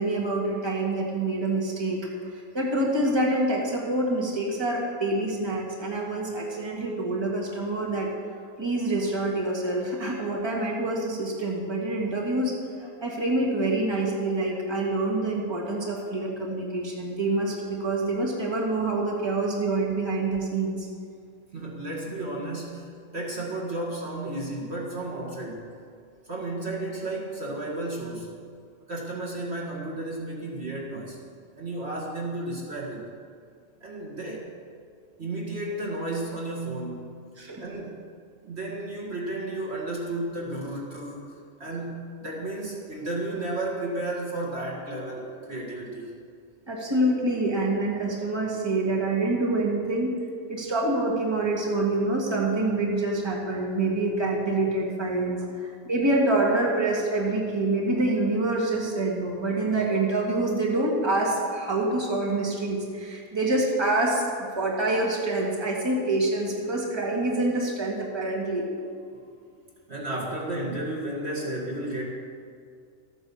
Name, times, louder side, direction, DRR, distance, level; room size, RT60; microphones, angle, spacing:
voice 1, 0.0-2.0 2.5-8.1 8.6-12.5 12.8-20.9 37.4-37.6 46.7-50.1 50.5-68.6, right 2 dB, 20° right, -3 dB, 2.0 m, -26 dB
voice 2, 21.5-25.7 26.3-28.3 28.9-31.2 31.6-33.1 33.8-34.5 35.2-37.2 37.6-38.0 38.4-41.2 41.6-46.1 55.4-55.5 68.8-69.2 69.9-72.1, right 2 dB, 45° right, -3 dB, 2.1 m, -33 dB
13.5 x 9.1 x 7.0 m, 2.2 s
omnidirectional pair, 1.5 m